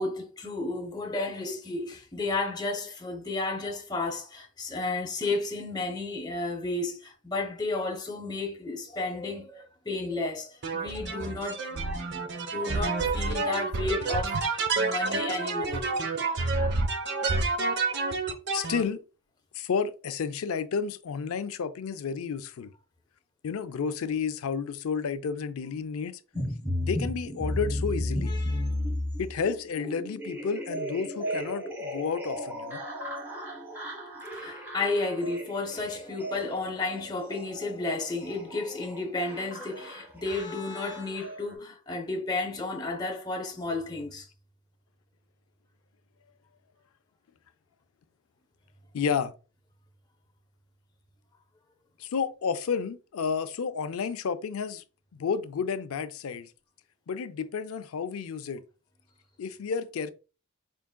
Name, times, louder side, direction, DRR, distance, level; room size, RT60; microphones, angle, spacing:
voice 1, 0.0-15.9 28.2-28.8 34.3-44.3, left 3 dB, 20° left, 0.6 m, -32 dB
sound 1, 10.6-18.8, right 3 dB, 50° right, 0.6 m, -29 dB
voice 2, 18.5-19.0 19.5-22.7 23.4-26.2 26.8-28.3 29.2-32.8 48.9-49.3 52.0-54.8 55.1-56.5 57.1-58.6 59.4-60.1, left 6 dB, 80° left, 0.4 m, -31 dB
sound 2, 26.3-41.5, left 1 dB, 10° right, 1.2 m, -35 dB
4.6 x 3.6 x 2.2 m
head